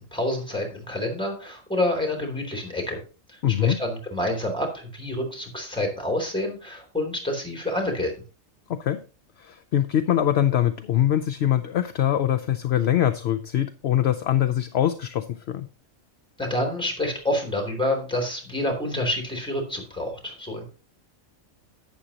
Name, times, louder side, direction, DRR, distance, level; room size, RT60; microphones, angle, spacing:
voice 1, 0.0-3.0 3.3-8.1 16.4-20.6, left 1 dB, 5° left, 2 dB, 3.1 m, -28 dB
voice 2, 3.4-3.8 8.8-9.0 9.4-15.7, left 11 dB, 65° left, 8 dB, 0.8 m, -23 dB
11.5 x 8.6 x 2.9 m, 0.35 s
omnidirectional pair, 1.3 m